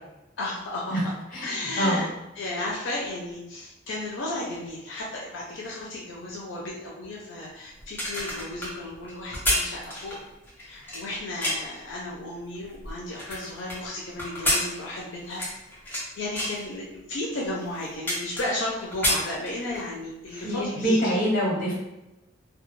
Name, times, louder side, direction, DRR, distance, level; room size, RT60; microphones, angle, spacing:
voice 1, 0.4-1.1 1.4-2.1 2.4-10.2 10.6-15.4 15.8-21.2, left 1 dB, 80° left, -4 dB, 0.5 m, -34 dB
voice 2, 1.3-2.0 20.3-21.7, equal, 45° left, -4 dB, 1.0 m, -25 dB
sound 1, 7.8-11.8 12.4-13.8 14.2-16.0 16.3-16.6 17.2-17.3 17.6-18.7 18.9-19.9 20.3-20.4, left 1 dB, 10° left, 0.7 m, -29 dB
2.2 x 2.2 x 3.0 m, 0.95 s
head